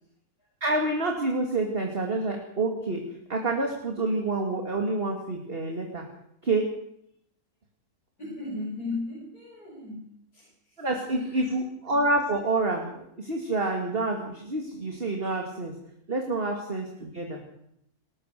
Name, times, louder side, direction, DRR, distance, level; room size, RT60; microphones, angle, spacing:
voice 1, 0.6-3.0 3.3-6.0 6.4-6.7 10.8-15.7 16.1-17.4, right 2 dB, 35° right, 2 dB, 2.7 m, -28 dB
voice 2, 8.2-10.9 11.1-11.5, left 2 dB, 75° left, -6 dB, 8.3 m, -37 dB
28.0 x 14.0 x 6.8 m, 0.77 s
omnidirectional pair, 1.6 m